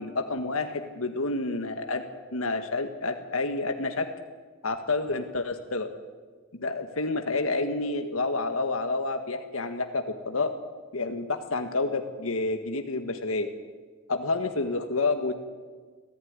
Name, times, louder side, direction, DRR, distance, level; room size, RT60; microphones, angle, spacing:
voice 1, 0.0-2.0 2.3-4.0 4.6-5.9 6.5-10.5 10.9-13.5 14.1-15.4, left 3 dB, 85° left, 6 dB, 1.7 m, -29 dB
24.0 x 15.5 x 9.6 m, 1.5 s
head